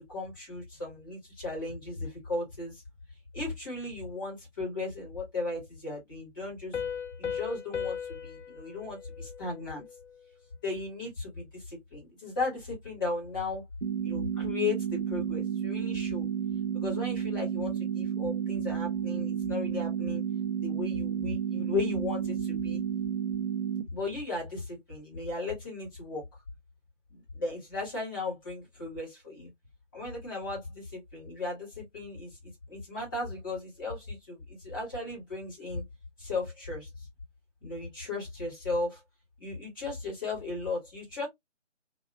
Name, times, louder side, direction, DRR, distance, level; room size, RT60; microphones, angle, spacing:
voice 1, 0.1-2.8 3.3-6.8 7.2-9.8 10.6-13.6 14.0-16.3 16.7-20.2 20.6-22.8 23.9-26.2 27.1-29.5 29.9-35.8 36.2-37.1 37.6-39.0 39.4-41.3, left 3 dB, 15° left, 1.1 m, -36 dB
Piano, 6.7-10.2, left 7 dB, 70° left, 0.5 m, -37 dB
sound 1, 13.8-23.8, right 8 dB, 50° right, 0.5 m, -31 dB
2.8 x 2.2 x 2.4 m
figure-of-eight pair, 150°, 37 cm